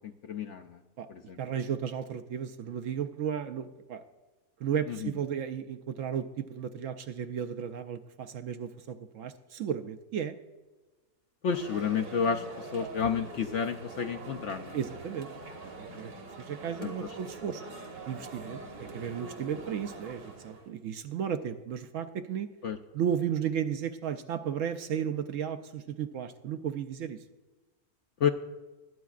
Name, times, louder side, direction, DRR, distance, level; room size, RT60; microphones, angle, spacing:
voice 1, 0.3-0.7 1.3-1.4 11.4-12.4 12.7-14.7 16.8-16.9 22.6-22.8 28.2-28.3, left 7 dB, 65° left, 5 dB, 0.7 m, -29 dB
voice 2, 1.4-4.0 4.6-10.4 12.8-12.9 14.7-15.3 15.6-16.1 16.4-17.6 18.1-22.5 22.9-27.2, right 8 dB, 70° right, 9 dB, 0.8 m, -34 dB
sound 1, 11.5-20.7, right 2 dB, 85° right, 2.1 m, -44 dB
21.5 x 9.2 x 2.4 m, 1.2 s
omnidirectional pair, 1.6 m